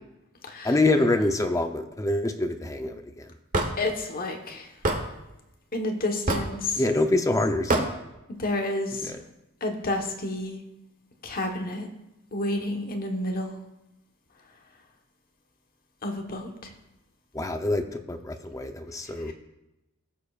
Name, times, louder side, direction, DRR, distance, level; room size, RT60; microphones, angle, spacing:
voice 1, 0.6-3.3 6.8-7.8 9.0-9.2 17.3-19.3, left 2 dB, 15° left, 6 dB, 0.6 m, -25 dB
Hammer / Wood, 3.5-3.7 4.8-5.0 6.3-6.6 7.7-7.9, right 2 dB, 40° right, 1.1 m, -23 dB
voice 2, 3.8-4.7 5.7-6.8 8.4-9.1 9.6-10.6 11.2-11.9 12.3-13.6 16.0-16.7 19.3-19.4, left 2 dB, 45° left, 3 dB, 1.2 m, -30 dB
17.0 x 6.8 x 2.4 m, 0.93 s
head